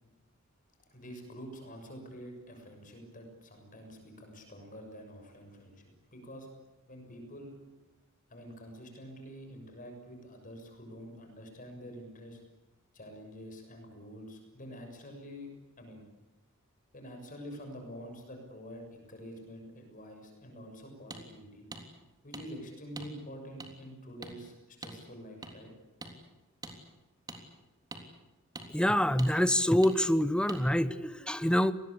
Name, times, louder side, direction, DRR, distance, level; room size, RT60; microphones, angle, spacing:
voice 1, 0.9-6.5 6.9-7.6 8.3-12.4 12.9-15.5 15.8-16.0 16.9-21.6 22.2-25.7, equal, 40° left, 4 dB, 6.6 m, -47 dB
sound 1, 21.1-21.2 21.7-21.8 22.3-22.4 23.0-23.1 23.6-23.7 24.2-24.3 24.8-25.0 25.4-25.5 26.0-26.1 26.6-26.8 27.3-27.4 27.9-28.0 28.6-28.7 29.2-29.3 29.8-30.0 30.5-30.6, right 2 dB, 20° right, 3.5 m, -43 dB
voice 2, 28.7-31.7, left 1 dB, 5° left, 13 dB, 0.9 m, -26 dB
27.5 x 20.5 x 8.6 m, 1.0 s
head